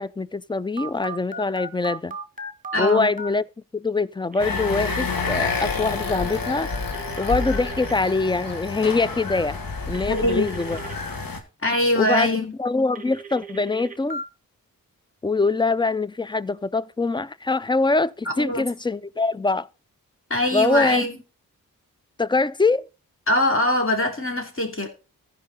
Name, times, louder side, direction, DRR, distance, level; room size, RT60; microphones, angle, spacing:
voice 1, 0.0-2.2 2.8-3.4 3.7-6.7 7.2-9.6 9.9-10.8 12.0-14.2 15.2-19.7 20.5-21.0 22.2-22.9, left 3 dB, 15° left, 0.4 m, -23 dB
Telephone, 0.8-3.3 4.3-5.0 6.9-7.9 9.9-11.0 13.0-14.2, right 3 dB, 20° right, 1.4 m, -37 dB
voice 2, 2.7-3.1 10.1-10.5 11.6-12.5 18.2-18.6 20.3-21.2 23.3-24.9, left 1 dB, 35° left, 2.8 m, -22 dB
sound 1, 4.4-11.4, left 4 dB, 70° left, 1.5 m, -29 dB
14.5 x 5.3 x 4.0 m
cardioid pair, 50°, 35 cm